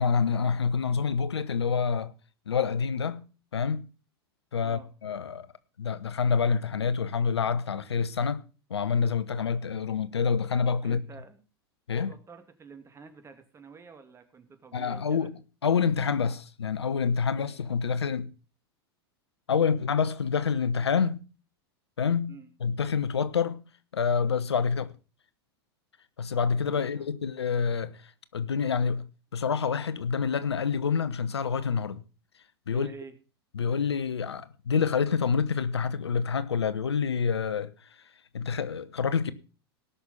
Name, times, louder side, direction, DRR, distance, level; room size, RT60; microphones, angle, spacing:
voice 1, 0.0-2.1 2.5-3.2 3.5-3.8 4.5-5.5 5.8-8.4 8.7-11.0 11.9-12.1 14.7-18.3 19.5-21.2 22.0-22.3 22.6-23.6 23.9-24.9 26.2-28.0 28.3-29.1 29.3-32.0 32.7-32.9 33.6-37.7 38.3-39.3, left 6 dB, 85° left, 1.0 m, -27 dB
voice 2, 4.6-4.9 10.8-11.5 11.9-15.3 22.3-22.5 26.7-27.1 32.7-33.1, right 5 dB, 20° right, 2.4 m, -49 dB
18.5 x 6.3 x 5.5 m
hypercardioid pair, 95°, 13 cm